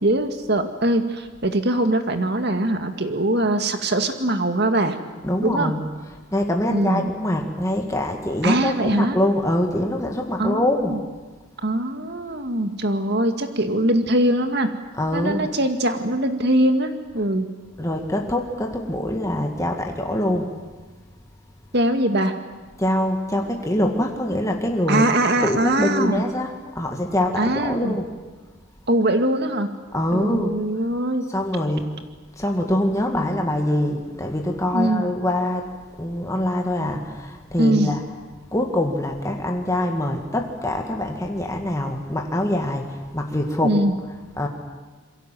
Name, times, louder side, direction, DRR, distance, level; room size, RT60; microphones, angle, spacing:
voice 1, 0.0-5.0 5.4-5.7 6.7-7.1 8.4-9.2 10.4-11.0 11.6-14.7 15.1-17.5 21.7-22.3 24.9-26.2 27.4-28.0 28.9-29.7 30.1-31.2 34.7-35.0 37.6-37.9 43.6-44.0, right 1 dB, 50° right, 6 dB, 2.1 m, -22 dB
voice 2, 5.2-11.0 14.9-15.5 17.8-20.5 22.8-25.1 25.4-28.1 29.9-30.5 31.3-31.9 32.4-35.7 36.0-38.1 38.5-44.5, left 1 dB, 15° left, 2 dB, 2.1 m, -24 dB
27.5 x 23.0 x 7.8 m, 1.3 s
head